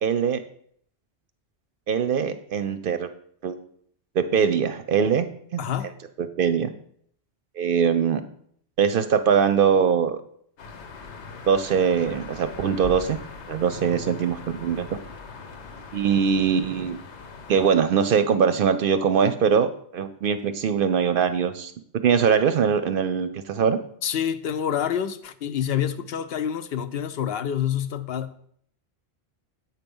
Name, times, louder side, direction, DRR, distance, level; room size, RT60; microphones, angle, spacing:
voice 1, 0.0-0.4 1.9-3.1 3.4-3.6 4.2-5.3 5.5-5.6 6.2-6.7 7.6-8.2 8.8-10.2 11.5-13.2 13.5-15.0 15.9-17.0 17.5-21.7 22.0-23.8, right 7 dB, 60° right, 0.6 m, -22 dB
voice 2, 5.6-5.9 13.8-14.3 24.0-28.5, left 9 dB, 70° left, 0.7 m, -28 dB
sound 1, 10.6-17.8, left 4 dB, 85° left, 1.2 m, -41 dB
8.1 x 4.5 x 5.3 m
omnidirectional pair, 1.1 m